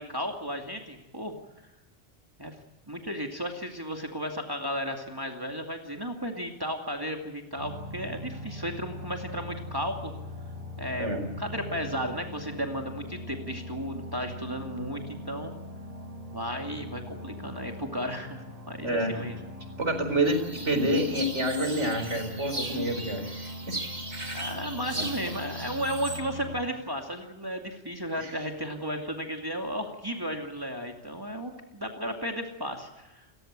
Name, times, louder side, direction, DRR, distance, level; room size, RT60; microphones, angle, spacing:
voice 1, 0.0-1.3 2.4-2.6 2.9-10.1 10.8-15.5 16.3-19.4 24.3-33.2, equal, 20° right, 3 dB, 2.4 m, -34 dB
sound 1, 7.5-26.6, left 1 dB, 60° right, 8.1 m, -41 dB
voice 2, 19.8-23.5 25.0-25.1 28.2-28.3, right 1 dB, 80° right, 6 dB, 4.8 m, -28 dB
sound 2, 20.2-26.2, right 2 dB, 40° right, 2.7 m, -38 dB
29.0 x 15.0 x 8.8 m, 1.0 s
omnidirectional pair, 1.2 m